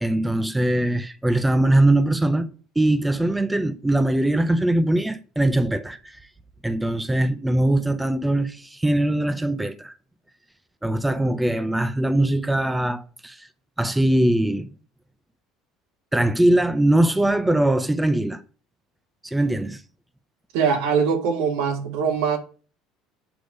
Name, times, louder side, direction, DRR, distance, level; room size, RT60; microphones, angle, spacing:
voice 1, 0.0-2.5 2.8-6.2 6.6-9.9 10.8-13.5 13.8-14.7 16.1-18.4 19.2-19.8, right 1 dB, 5° right, 0.4 m, -21 dB
voice 2, 20.5-22.4, right 6 dB, 80° right, 1.5 m, -22 dB
7.8 x 3.4 x 6.4 m
cardioid pair, 140°, 0 cm